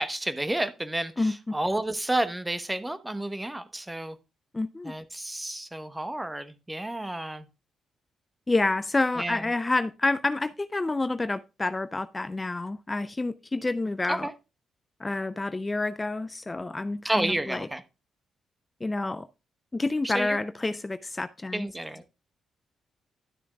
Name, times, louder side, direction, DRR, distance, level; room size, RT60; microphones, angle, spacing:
voice 1, 0.0-4.2 4.8-7.5 9.2-9.4 14.1-14.3 17.0-17.8 20.0-20.4 21.5-22.0, right 1 dB, 15° right, 1.1 m, -30 dB
voice 2, 1.2-1.6 4.5-4.9 8.5-14.3 15.0-17.7 18.8-19.3 19.7-21.7, left 2 dB, 25° left, 0.5 m, -28 dB
12.5 x 6.9 x 2.4 m
supercardioid pair, 65°, 0 cm